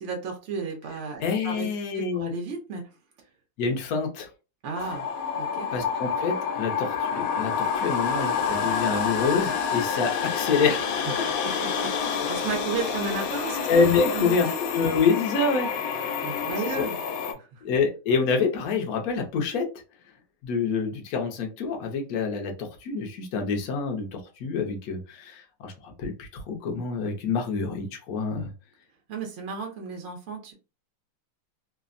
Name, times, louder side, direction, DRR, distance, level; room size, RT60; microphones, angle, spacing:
voice 1, 0.0-1.7 1.9-2.8 4.6-5.1 5.3-5.7 11.0-13.7 14.1-14.6 16.2-17.0 17.2-17.6 29.1-30.5, right 5 dB, 70° right, 1 dB, 0.7 m, -34 dB
voice 2, 1.2-2.3 3.6-4.3 5.7-11.0 13.7-15.7 16.6-16.9 17.6-19.7 20.4-28.5, left 5 dB, 65° left, 2 dB, 1.0 m, -27 dB
sound 1, 4.8-17.3, left 6 dB, 85° left, 1.4 m, -28 dB
3.3 x 2.0 x 2.4 m, 0.31 s
omnidirectional pair, 2.1 m